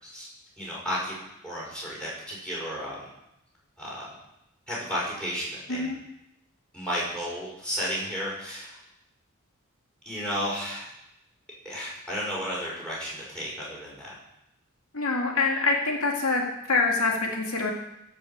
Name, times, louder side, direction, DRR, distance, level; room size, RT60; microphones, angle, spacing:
voice 1, 0.6-1.1 1.4-3.1 3.8-4.1 4.7-5.9 6.7-8.8 10.0-10.9 11.6-14.1, equal, 5° left, -6 dB, 6.0 m, -33 dB
voice 2, 14.9-16.4 16.7-17.7, left 3 dB, 85° left, -1 dB, 2.4 m, -25 dB
16.5 x 6.1 x 7.5 m, 0.85 s
head